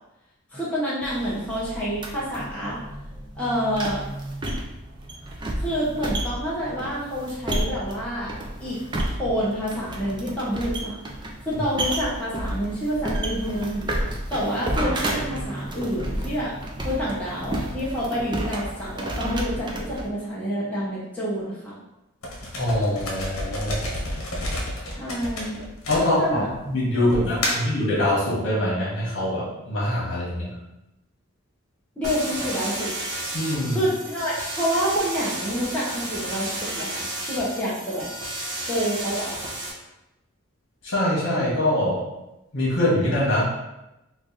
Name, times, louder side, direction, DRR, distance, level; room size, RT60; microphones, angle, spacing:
voice 1, 0.5-2.8 3.4-4.0 5.6-8.3 8.6-11.0 11.4-16.6 16.8-21.7 24.8-25.6 26.0-26.5 26.7-27.7 32.0-32.9 33.7-38.1 38.7-39.3, equal, 5° left, -9 dB, 0.8 m, -28 dB
sound 1, 1.0-20.1, right 1 dB, 20° right, 0.4 m, -31 dB
sound 2, 22.2-26.5 27.1-27.8, left 1 dB, 75° left, 0.9 m, -30 dB
voice 2, 22.6-23.9 25.9-26.2 26.6-30.5 33.3-33.8 40.8-42.0 42.5-43.5, left 1 dB, 60° left, -6 dB, 1.3 m, -23 dB
sound 3, 32.0-39.7, right 1 dB, 60° right, 1.0 m, -32 dB
3.2 x 2.5 x 3.9 m, 0.94 s
head